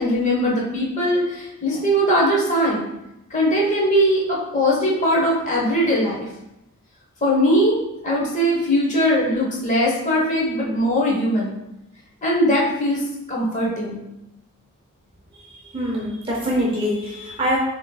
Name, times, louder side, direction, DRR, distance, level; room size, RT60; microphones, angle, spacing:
voice 1, 0.0-2.8 3.3-6.3 7.2-11.5 12.2-13.0 13.3-14.0, equal, 35° left, -4 dB, 1.2 m, -20 dB
voice 2, 15.3-17.6, equal, 25° right, -4 dB, 0.7 m, -24 dB
7.0 x 3.2 x 2.4 m, 0.89 s
head